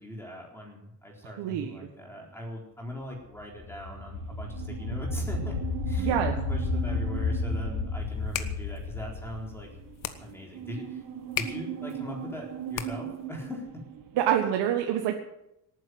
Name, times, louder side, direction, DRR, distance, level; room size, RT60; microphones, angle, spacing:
voice 1, 0.0-5.6 5.9-9.7 10.2-11.0 11.4-13.8, left 1 dB, 5° left, 0 dB, 4.0 m, -40 dB
voice 2, 1.2-1.9 6.0-6.3 14.2-15.2, right 10 dB, 90° right, 3 dB, 1.6 m, -27 dB
sound 1, 3.4-10.2, left 3 dB, 70° left, 2.3 m, -32 dB
sound 2, 4.2-14.3, right 8 dB, 55° right, 1.7 m, -40 dB
sound 3, 8.0-13.3, left 10 dB, 50° left, 1.3 m, -39 dB
18.0 x 9.6 x 7.9 m, 0.84 s
cardioid pair, 170°, 40 cm